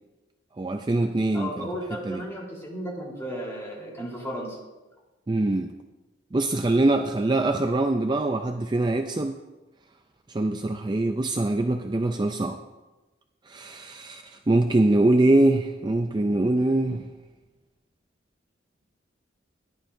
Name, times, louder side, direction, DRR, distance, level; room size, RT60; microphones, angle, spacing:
voice 1, 0.6-1.7 2.0-2.2 5.3-5.7 6.3-9.4 10.3-12.6 13.5-17.0, right 2 dB, 25° right, 5 dB, 0.4 m, -23 dB
voice 2, 1.3-4.6, equal, 15° left, -5 dB, 3.8 m, -34 dB
17.0 x 11.0 x 2.7 m, 1.1 s
head